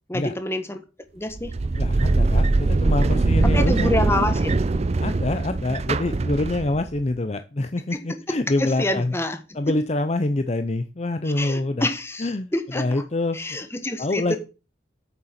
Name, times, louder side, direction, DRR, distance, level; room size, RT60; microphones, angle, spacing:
voice 1, 0.1-0.8 1.1-1.5 3.5-4.6 7.9-9.4 9.6-9.7 11.2-13.0 13.3-14.4, left 1 dB, 15° left, 1.4 m, -27 dB
sound 1, 1.3-7.0, right 3 dB, 35° right, 0.4 m, -21 dB
voice 2, 1.8-3.9 5.0-9.1 9.5-11.9 12.2-13.7 14.0-14.4, left 2 dB, 35° left, 0.6 m, -26 dB
8.9 x 6.9 x 5.8 m
head